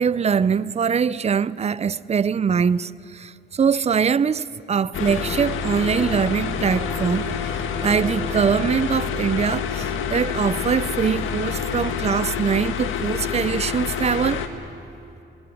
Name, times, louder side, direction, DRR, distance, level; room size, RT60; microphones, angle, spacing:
voice 1, 0.0-7.3 7.8-14.4, right 6 dB, 35° right, 0.6 m, -22 dB
sound 1, 4.9-14.5, left 6 dB, 80° left, 1.8 m, -27 dB
26.0 x 20.5 x 9.3 m
cardioid pair, 90°, 20 cm